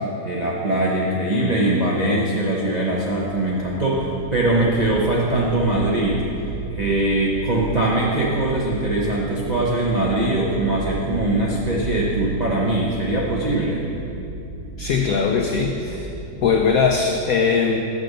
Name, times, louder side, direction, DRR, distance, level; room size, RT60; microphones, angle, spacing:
voice 1, 0.2-6.3 6.7-13.8, right 2 dB, 90° right, -5 dB, 0.3 m, -21 dB
sound 1, 2.8-17.0, right 2 dB, 70° right, 2.2 m, -34 dB
voice 2, 14.8-16.1 16.4-17.8, left 5 dB, 85° left, 3 dB, 0.7 m, -20 dB
6.6 x 5.3 x 6.5 m, 2.8 s
omnidirectional pair, 2.0 m